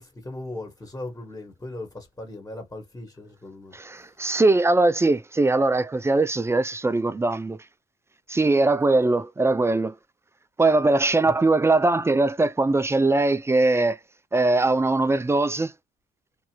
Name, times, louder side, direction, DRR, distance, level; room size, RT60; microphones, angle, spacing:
voice 1, 0.0-4.0 11.2-11.4, left 2 dB, 15° left, 1.3 m, -38 dB
voice 2, 3.7-7.6 8.3-10.0 10.6-14.0 14.3-15.7, right 2 dB, 15° right, 0.3 m, -21 dB
2.7 x 2.4 x 2.9 m
cardioid pair, 90°, 20 cm